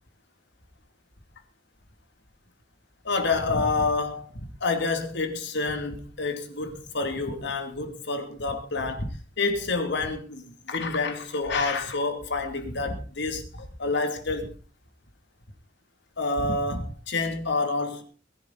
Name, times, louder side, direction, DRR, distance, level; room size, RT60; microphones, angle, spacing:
voice 1, 3.0-4.3 4.6-14.5 16.2-18.0, left 3 dB, 65° left, 2.7 m, -28 dB
21.5 x 11.0 x 4.1 m
head